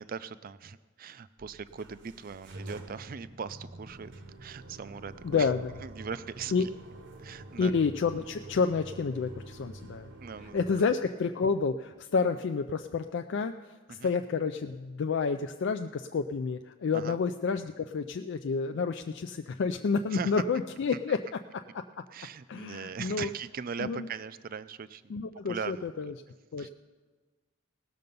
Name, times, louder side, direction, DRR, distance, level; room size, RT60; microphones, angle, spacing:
voice 1, 0.0-4.1 4.4-5.5 5.8-6.7 7.2-7.8 10.2-10.7 13.9-14.1 16.9-17.2 20.1-20.3 22.1-25.2 25.5-26.1 26.6-26.7, right 6 dB, 40° right, 14 dB, 0.4 m, -40 dB
sound 1, 1.4-10.8, right 2 dB, 60° right, 0.9 m, -47 dB
voice 2, 5.2-5.7 6.5-6.7 7.6-10.1 10.5-13.5 13.9-21.2 22.5-23.3 23.8-24.1 25.1-26.1 26.5-26.7, left 5 dB, 55° left, 7 dB, 0.4 m, -29 dB
18.5 x 6.7 x 5.3 m, 1.3 s
head